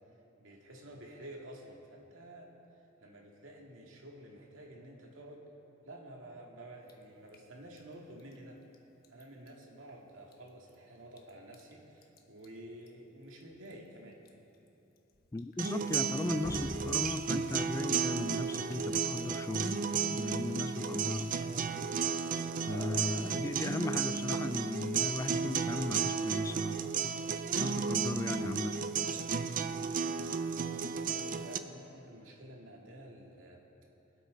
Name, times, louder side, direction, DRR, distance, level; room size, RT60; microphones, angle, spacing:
voice 1, 0.4-2.5 3.0-5.4 5.8-8.6 9.1-14.2 22.7-23.3 30.7-33.6, right 1 dB, 80° right, 0 dB, 2.1 m, -50 dB
Drip, 6.8-25.1, left 1 dB, 50° left, 1.1 m, -54 dB
voice 2, 15.3-19.8 20.1-21.4 22.6-26.9 27.6-28.8, left 2 dB, 15° left, 11 dB, 0.3 m, -36 dB
sound 1, 15.6-31.6, right 6 dB, 45° right, 0.5 m, -33 dB
Telephone, 20.6-21.2 21.5-23.1 23.5-26.3 26.6-26.8 27.1-27.3 27.5-27.8 28.0-28.2 28.5-28.7 29.0-29.2, right 2 dB, 65° right, 1.8 m, -60 dB
23.5 x 8.6 x 4.0 m, 2.9 s
head